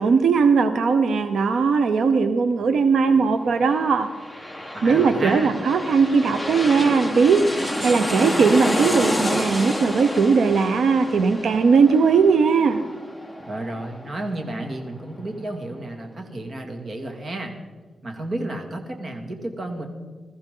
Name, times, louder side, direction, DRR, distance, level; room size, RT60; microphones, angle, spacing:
voice 1, 0.0-4.1 4.8-7.4 7.8-12.8, right 5 dB, 85° right, 8 dB, 0.7 m, -19 dB
sound 1, 3.8-15.2 15.5-15.6, left 1 dB, 5° right, 1.4 m, -29 dB
voice 2, 4.8-5.5 13.5-17.5 18.0-19.9, right 1 dB, 40° right, 3 dB, 2.3 m, -31 dB
21.0 x 14.0 x 3.8 m, 1.4 s
wide cardioid pair, 115°, 0 cm